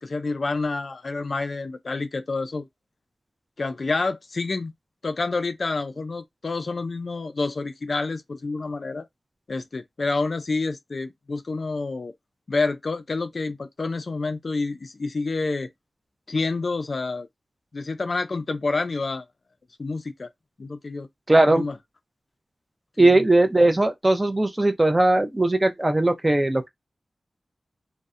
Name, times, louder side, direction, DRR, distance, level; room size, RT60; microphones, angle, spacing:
voice 1, 0.0-2.7 3.6-4.7 5.0-9.1 9.5-12.1 12.5-15.7 16.3-17.3 17.7-19.2 19.8-20.3 20.6-21.1 21.5-21.8 23.0-23.2, left 3 dB, 55° left, 0.3 m, -28 dB
voice 2, 21.3-21.6 23.0-26.7, right 2 dB, 20° right, 0.4 m, -19 dB
2.5 x 2.0 x 2.4 m
wide cardioid pair, 105°, 0 cm